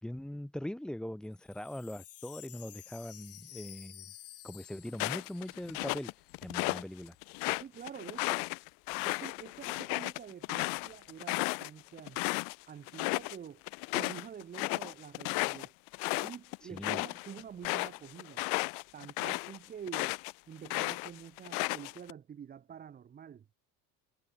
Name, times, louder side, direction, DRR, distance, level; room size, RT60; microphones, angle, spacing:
voice 1, 0.0-4.0 4.4-6.1 6.4-7.2 16.7-17.0, left 1 dB, ahead, 4.4 m, -41 dB
Wind chime, 1.2-6.5 6.7-6.8 7.0-7.5, left 13 dB, 40° left, 5.9 m, -53 dB
sound 1, 4.9-6.8 7.2-12.5 12.9-13.4 13.7-20.3 20.6-22.1, left 40 dB or more, 85° left, 0.7 m, -34 dB
voice 2, 7.6-8.5 9.0-12.2 12.7-13.6 13.9-15.7 16.2-18.4 18.9-20.2 20.5-23.5, right 8 dB, 25° right, 2.8 m, -47 dB
cardioid pair, 170°, 35 cm